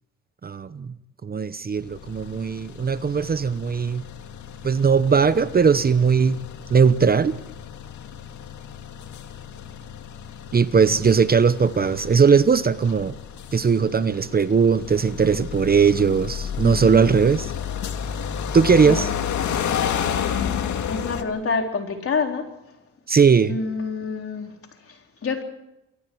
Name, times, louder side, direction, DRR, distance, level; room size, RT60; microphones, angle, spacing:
voice 1, 0.4-0.9 1.2-4.0 4.6-6.4 6.7-7.4 10.5-13.1 13.5-17.5 18.5-19.1 23.1-23.6, right 6 dB, 30° right, 14 dB, 0.9 m, -19 dB
sound 1, 1.8-21.2, left 8 dB, 75° left, 2.1 m, -32 dB
voice 2, 16.6-17.2 18.8-19.1 20.9-22.5 23.5-24.5 25.2-25.4, left 4 dB, 45° left, 4 dB, 3.9 m, -27 dB
29.0 x 22.5 x 4.7 m, 0.90 s
cardioid pair, 90°, 30 cm